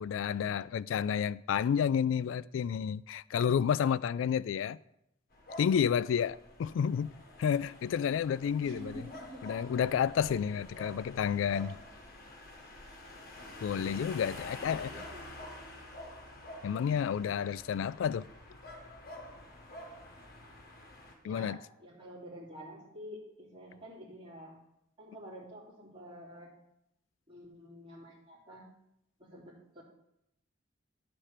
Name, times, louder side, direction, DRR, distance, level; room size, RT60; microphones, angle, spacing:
voice 1, 0.0-4.8 5.6-7.1 7.4-9.0 9.4-11.8 13.6-14.9 16.6-18.3 21.2-21.6, left 8 dB, 90° left, 0.3 m, -30 dB
sound 1, 5.3-21.2, left 1 dB, 55° left, 1.5 m, -48 dB
voice 2, 8.6-9.4 10.9-11.0 13.8-15.5 21.2-24.6 25.0-26.5 27.3-28.7 29.2-29.8, equal, 30° right, 3.0 m, -49 dB
10.5 x 4.3 x 6.6 m
head